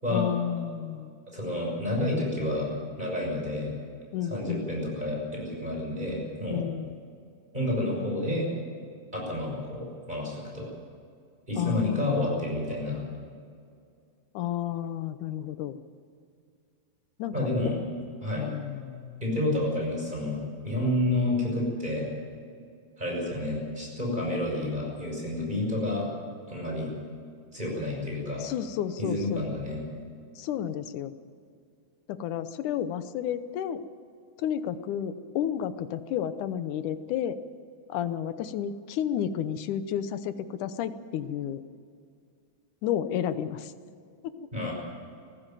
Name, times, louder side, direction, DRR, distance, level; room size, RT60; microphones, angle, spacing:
voice 1, 0.1-1.1 4.1-4.8 6.5-7.0 11.6-12.2 14.3-15.8 17.2-17.3 18.4-19.2 28.4-29.5 30.4-31.1 32.1-33.8 34.4-37.4 37.9-41.6 42.8-43.7, left 10 dB, 90° left, 12 dB, 2.4 m, -31 dB
voice 2, 1.3-2.7 3.0-3.7 4.3-6.6 7.5-8.5 9.1-10.7 11.5-13.0 17.3-17.8 18.2-18.5 19.2-20.4 20.6-22.1 23.0-26.1 26.5-26.9 27.5-28.4 29.0-29.8 44.5-44.7, left 1 dB, 15° right, -2 dB, 6.3 m, -29 dB
19.5 x 14.5 x 9.1 m, 2.3 s
omnidirectional pair, 3.5 m